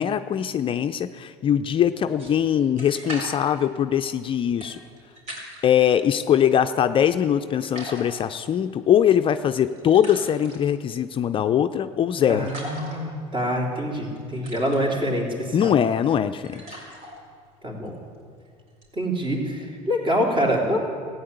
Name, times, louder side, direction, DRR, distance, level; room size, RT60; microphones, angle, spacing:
voice 1, 0.0-4.8 5.6-12.5 15.5-16.6, left 9 dB, 40° left, 9 dB, 0.5 m, -22 dB
sound 1, 2.1-5.9 6.3-7.3 7.6-19.4, equal, 55° right, 4.4 m, -42 dB
voice 2, 12.3-15.7 17.6-17.9 18.9-20.8, equal, 35° right, -1 dB, 3.5 m, -25 dB
14.5 x 9.3 x 8.1 m, 2.2 s
supercardioid pair, 95°, 14 cm